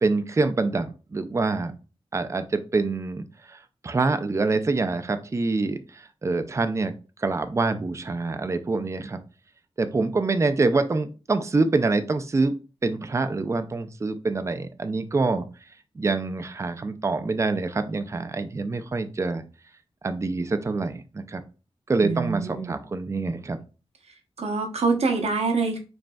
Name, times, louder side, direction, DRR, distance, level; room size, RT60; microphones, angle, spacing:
voice 1, 0.0-1.7 2.1-6.9 7.2-9.2 9.8-12.5 12.8-15.4 16.0-19.4 20.0-21.4 21.9-23.6, right 3 dB, 25° right, 9 dB, 0.4 m, -26 dB
voice 2, 22.0-22.8 24.4-25.8, right 4 dB, 75° right, 4 dB, 0.8 m, -25 dB
5.1 x 3.2 x 2.3 m, 0.34 s
wide cardioid pair, 85°, 11 cm